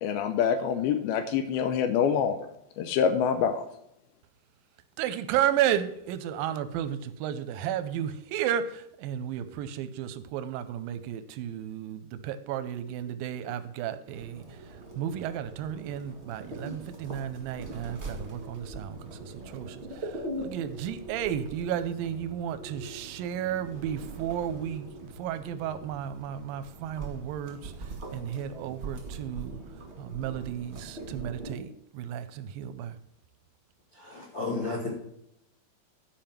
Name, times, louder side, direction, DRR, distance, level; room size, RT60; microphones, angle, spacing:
voice 1, 0.0-2.4 2.8-3.7, left 7 dB, 80° left, 9 dB, 2.4 m, -26 dB
voice 2, 5.0-14.4 15.0-27.7 28.1-29.6 30.0-33.0, right 10 dB, 80° right, 11 dB, 2.2 m, -33 dB
sound 1, 14.1-31.5, right 2 dB, 30° right, 1.3 m, -42 dB
voice 3, 33.9-34.9, left 3 dB, 40° left, -1 dB, 1.8 m, -33 dB
10.5 x 5.2 x 5.8 m, 0.77 s
omnidirectional pair, 4.6 m